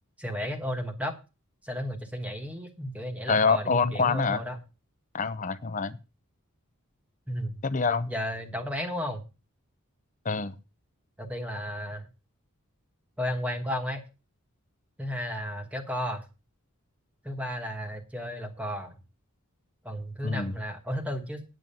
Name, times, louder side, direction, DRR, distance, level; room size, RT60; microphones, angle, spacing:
voice 1, 0.2-1.2 1.6-4.6 7.3-7.6 8.1-9.2 11.2-12.1 13.2-14.0 15.0-16.3 17.2-18.9 19.8-21.4, equal, 5° right, 5 dB, 1.3 m, -33 dB
voice 2, 3.3-4.4 5.1-6.0 7.6-8.1 10.2-10.6 20.2-20.5, left 4 dB, 35° left, 14 dB, 0.7 m, -26 dB
9.3 x 7.8 x 5.5 m, 0.30 s
head